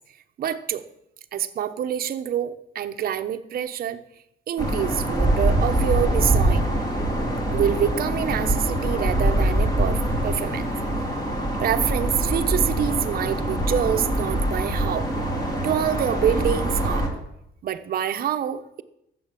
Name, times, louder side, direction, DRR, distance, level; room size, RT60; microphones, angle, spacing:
voice 1, 0.4-0.8 1.3-4.0 4.5-6.7 7.5-10.7 11.6-15.1 15.6-17.1 17.6-18.8, right 9 dB, 50° right, 8 dB, 1.0 m, -26 dB
sound 1, 4.6-17.1, right 1 dB, 20° left, 3.1 m, -24 dB
15.0 x 7.9 x 7.5 m, 0.80 s
cardioid pair, 160°, 19 cm